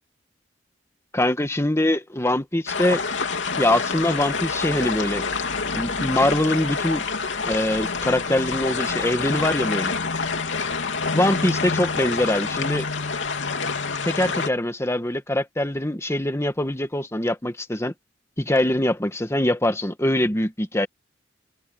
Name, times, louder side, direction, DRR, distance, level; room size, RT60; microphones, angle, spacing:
voice 1, 1.1-3.0 3.6-5.2 5.7-7.0 7.4-9.9 11.1-12.9 14.0-17.9 18.4-20.9, left 1 dB, 15° left, 1.6 m, -23 dB
sound 1, 2.7-14.5, left 4 dB, 85° left, 2.9 m, -27 dB
head